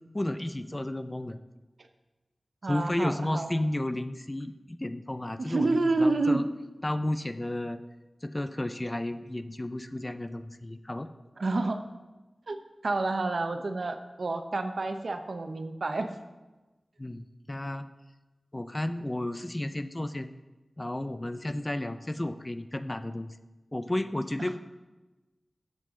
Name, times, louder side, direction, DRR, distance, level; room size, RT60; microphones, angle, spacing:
voice 1, 0.1-1.4 2.7-6.5 6.8-7.8 8.2-11.1 17.0-17.9 18.5-20.3 20.8-23.4 23.7-24.6, left 1 dB, 25° left, 10 dB, 0.4 m, -32 dB
voice 2, 2.6-3.7 5.4-6.5 11.4-11.8 12.5-12.6 12.8-16.1 24.4-24.6, right 2 dB, 70° right, 7 dB, 0.8 m, -29 dB
12.0 x 7.6 x 3.7 m, 1.1 s
wide cardioid pair, 85°, 0 cm